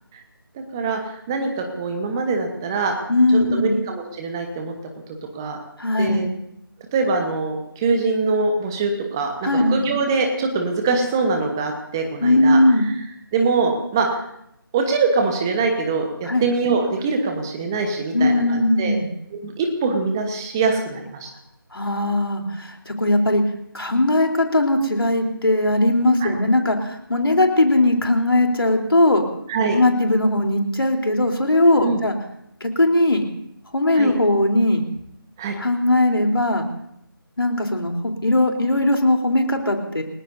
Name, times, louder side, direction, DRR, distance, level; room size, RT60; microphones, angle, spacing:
voice 1, 0.5-3.0 3.3-4.7 5.3-5.6 6.0-6.3 6.9-12.9 13.3-14.2 14.7-18.9 19.3-21.3 26.2-26.4 29.5-29.8 31.8-32.0 33.9-34.1 35.4-35.6, right 4 dB, 10° right, 4 dB, 1.1 m, -23 dB
voice 2, 3.1-3.8 5.8-6.3 9.4-9.8 12.2-12.9 16.3-16.4 18.1-19.1 21.7-23.4 23.7-29.2 29.7-32.1 32.6-33.2 33.7-34.8 35.6-36.6 37.4-40.0, left 1 dB, 75° left, 3 dB, 3.6 m, -19 dB
29.5 x 18.0 x 2.7 m, 0.77 s
figure-of-eight pair, 170°, 12 cm